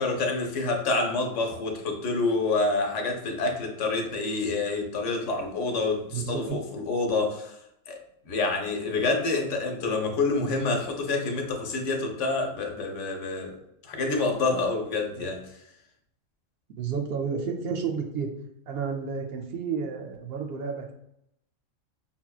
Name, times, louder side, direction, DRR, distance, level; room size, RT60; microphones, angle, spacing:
voice 1, 0.0-7.6 7.9-8.0 8.2-13.6 13.8-15.5, left 3 dB, 75° left, 2 dB, 1.0 m, -27 dB
voice 2, 6.1-6.6 16.8-18.3 18.7-20.9, right 6 dB, 65° right, 4 dB, 0.7 m, -31 dB
5.7 x 2.1 x 2.3 m, 0.78 s
omnidirectional pair, 1.3 m